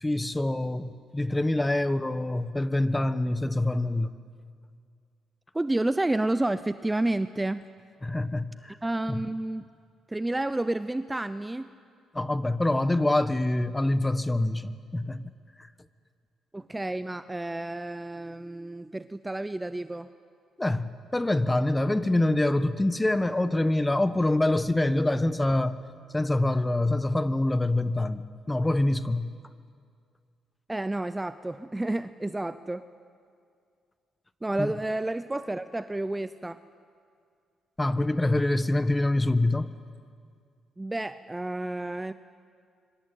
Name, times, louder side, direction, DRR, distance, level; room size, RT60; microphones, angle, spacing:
voice 1, 0.0-4.1 8.0-8.8 9.1-9.2 12.1-15.3 15.6-15.7 20.6-25.8 26.1-29.3 34.6-34.7 37.8-39.7, left 1 dB, 15° left, 13 dB, 1.2 m, -25 dB
voice 2, 5.5-7.7 8.8-9.6 10.1-11.7 16.5-20.1 30.7-32.8 34.4-36.6 40.8-42.1, right 2 dB, 15° right, 12 dB, 0.7 m, -30 dB
24.5 x 24.5 x 9.1 m, 2.2 s
cardioid pair, 90°, 0 cm